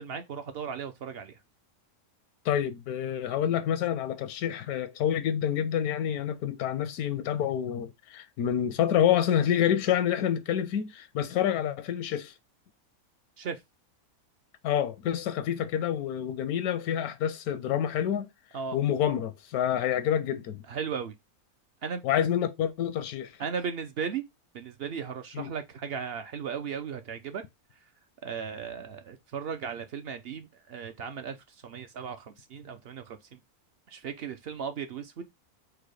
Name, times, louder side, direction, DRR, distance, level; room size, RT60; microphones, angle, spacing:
voice 1, 0.0-1.4 13.4-13.6 18.5-18.8 20.7-21.2 21.8-22.0 23.4-24.2 24.5-27.4 28.2-33.4 33.9-35.2, right 6 dB, 65° right, 0.6 m, -36 dB
voice 2, 2.4-12.3 14.6-18.3 18.7-20.6 22.0-23.3 25.3-25.5, left 10 dB, 80° left, 1.0 m, -28 dB
4.7 x 2.1 x 4.6 m
omnidirectional pair, 1.5 m